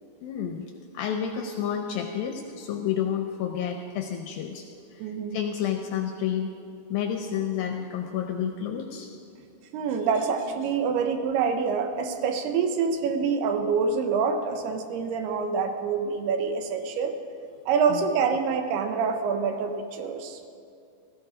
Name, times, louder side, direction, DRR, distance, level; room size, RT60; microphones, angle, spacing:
voice 1, 0.2-4.7 4.9-6.5 6.9-9.1 17.9-18.1, left 8 dB, 80° left, 5 dB, 2.1 m, -30 dB
voice 2, 5.0-5.4 9.7-17.1 17.7-20.4, right 5 dB, 75° right, 6 dB, 2.7 m, -26 dB
16.5 x 14.0 x 5.0 m, 2.4 s
omnidirectional pair, 4.9 m